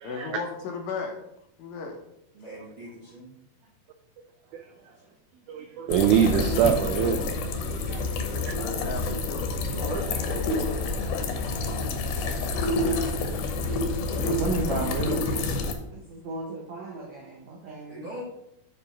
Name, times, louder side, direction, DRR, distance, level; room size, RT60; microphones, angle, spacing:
voice 1, 0.0-1.2 1.6-2.0 2.4-2.5 8.1-9.9, left 4 dB, 70° left, 3 dB, 2.6 m, -36 dB
voice 2, 2.3-3.3 9.7-10.8 12.1-12.4 17.9-18.2, right 1 dB, 55° right, -4 dB, 1.6 m, -38 dB
voice 3, 5.5-8.1 12.9-13.1, right 8 dB, 90° right, 6 dB, 1.7 m, -25 dB
sound 1, 5.9-15.7, left 2 dB, 85° left, 2.9 m, -28 dB
voice 4, 7.6-8.1 11.2-11.4 11.7-12.2 12.6-13.0 14.1-15.3 15.9-18.1, right 2 dB, 70° right, 0 dB, 1.7 m, -34 dB
voice 5, 13.2-14.3 14.8-15.7 17.7-17.8, left 1 dB, 40° left, -4 dB, 2.5 m, -57 dB
7.1 x 5.0 x 5.7 m, 0.78 s
omnidirectional pair, 4.2 m